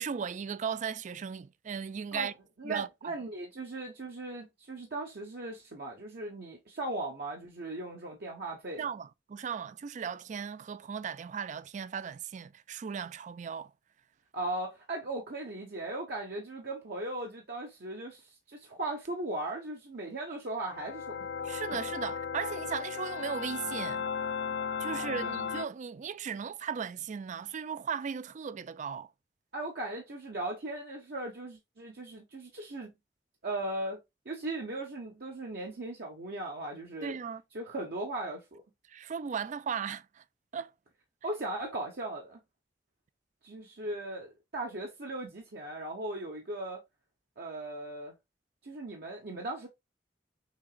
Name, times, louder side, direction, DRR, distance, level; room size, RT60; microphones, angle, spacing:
voice 1, 0.0-2.3 2.6-3.1 8.8-13.7 21.4-24.0 24.8-29.1 37.0-37.4 38.9-40.2 40.5-40.7, right 7 dB, 45° right, 0.4 m, -37 dB
voice 2, 2.6-8.9 14.3-21.3 24.9-25.3 29.5-32.9 33.4-34.0 34.2-37.2 37.5-38.6 41.2-42.4 43.4-46.8 47.4-48.1 48.6-49.7, right 2 dB, 65° right, 1.0 m, -38 dB
sound 1, 20.6-25.7, left 6 dB, 70° left, 0.5 m, -35 dB
6.2 x 2.9 x 2.3 m
head